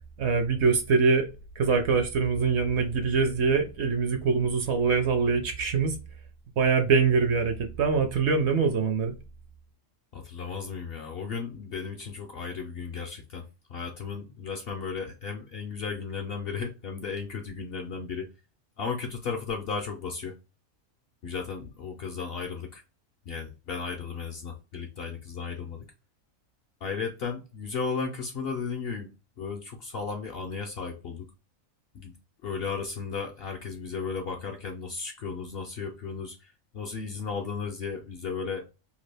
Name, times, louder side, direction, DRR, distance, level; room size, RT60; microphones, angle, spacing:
voice 1, 0.2-1.3 1.6-6.0 6.6-9.1, right 5 dB, 65° right, 0.8 m, -24 dB
voice 2, 10.1-13.4 13.7-18.3 18.8-20.3 21.2-22.8 23.3-25.8 26.8-29.1 29.4-31.2 31.9-32.1 32.4-38.6, left 5 dB, 60° left, 0.6 m, -35 dB
2.9 x 2.2 x 3.3 m
omnidirectional pair, 1.4 m